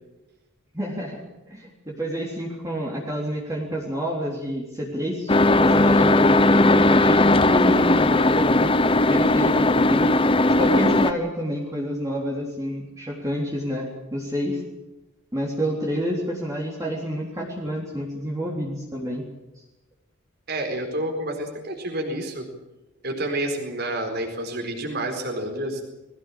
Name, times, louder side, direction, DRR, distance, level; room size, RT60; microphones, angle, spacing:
voice 1, 0.7-1.2 1.5-10.1 10.6-14.6 15.3-19.2 19.6-19.7, equal, 15° right, -3 dB, 3.6 m, -29 dB
sound 1, 5.3-11.1, left 2 dB, 25° left, 0.8 m, -18 dB
voice 2, 20.5-22.5 23.0-25.8, right 1 dB, 45° right, 2 dB, 4.4 m, -29 dB
22.0 x 17.5 x 8.6 m, 1.0 s
head